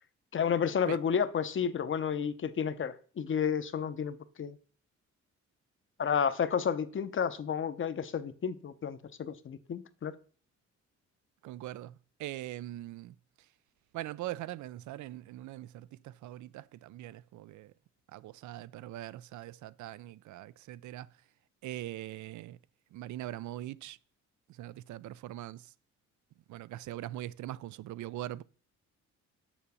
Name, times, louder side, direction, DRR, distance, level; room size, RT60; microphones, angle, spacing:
voice 1, 0.3-4.6 6.0-10.1, left 7 dB, 40° left, 0.8 m, -31 dB
voice 2, 11.4-13.2 13.9-17.7 18.1-21.1 21.6-22.6 22.9-24.0 24.5-25.7 26.5-28.4, right 14 dB, 70° right, 0.5 m, -42 dB
7.1 x 5.1 x 6.9 m
cardioid pair, 90°, 30 cm